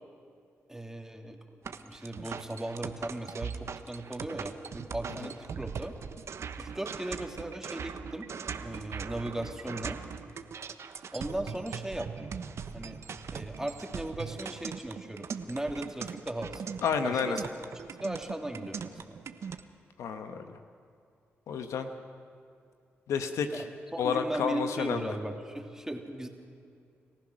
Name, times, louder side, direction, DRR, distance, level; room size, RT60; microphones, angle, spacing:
voice 1, 0.7-1.4 1.6-6.0 6.6-8.3 8.6-10.0 11.1-12.3 12.7-13.0 13.3-16.6 17.0-17.5 18.0-19.2 23.5-26.3, right 1 dB, 10° right, 3 dB, 2.9 m, -37 dB
sound 1, 1.6-19.6, right 6 dB, 65° right, 1.0 m, -40 dB
voice 2, 16.8-17.4 20.0-20.5 21.5-21.9 23.1-23.6 24.0-25.0, left 6 dB, 80° left, 7 dB, 1.2 m, -30 dB
29.5 x 15.0 x 6.4 m, 2.4 s
supercardioid pair, 50°, 5 cm